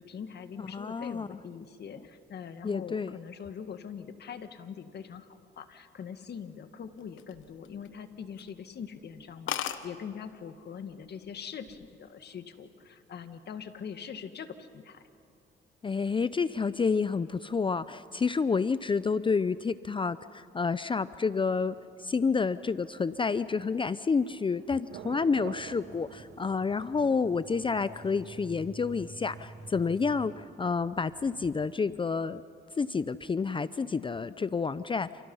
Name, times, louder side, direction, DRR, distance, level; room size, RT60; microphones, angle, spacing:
voice 1, 0.0-5.3 5.6-15.0, left 7 dB, 55° left, 8 dB, 2.0 m, -42 dB
voice 2, 0.6-1.3 2.6-3.1 15.8-32.4 32.8-35.1, left 5 dB, 25° left, 14 dB, 0.6 m, -29 dB
sound 1, 7.0-8.0 8.4-8.6 9.0-9.1 9.2-9.3 9.5-9.8 10.8-11.1 11.4-11.8, left 11 dB, 80° left, 1.3 m, -35 dB
Thunder, 20.8-32.7 33.0-33.1, right 9 dB, 75° right, 1.2 m, -52 dB
sound 2, 24.9-30.3, right 2 dB, 35° right, 5.5 m, -49 dB
29.5 x 29.0 x 5.6 m, 2.6 s
cardioid pair, 90°, 20 cm